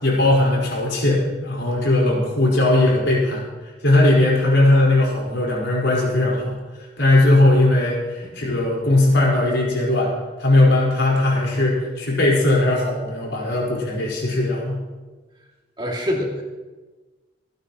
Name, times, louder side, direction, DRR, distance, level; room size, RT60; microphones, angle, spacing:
voice 1, 0.0-3.4 3.8-6.6 7.0-10.1 10.4-14.8, left 2 dB, 80° left, -3 dB, 4.8 m, -18 dB
voice 2, 15.8-16.4, left 1 dB, 25° right, -1 dB, 2.5 m, -25 dB
28.0 x 9.9 x 3.1 m, 1.3 s
head